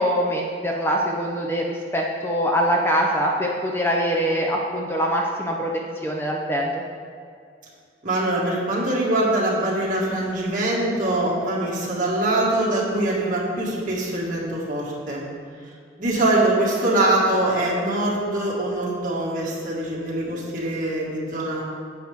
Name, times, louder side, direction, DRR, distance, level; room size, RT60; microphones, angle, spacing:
voice 1, 0.0-5.7 6.0-6.7, equal, 15° left, 0 dB, 0.6 m, -23 dB
voice 2, 8.0-15.2 16.0-21.6, right 1 dB, 45° right, -5 dB, 2.0 m, -23 dB
9.5 x 7.7 x 3.6 m, 2.2 s
head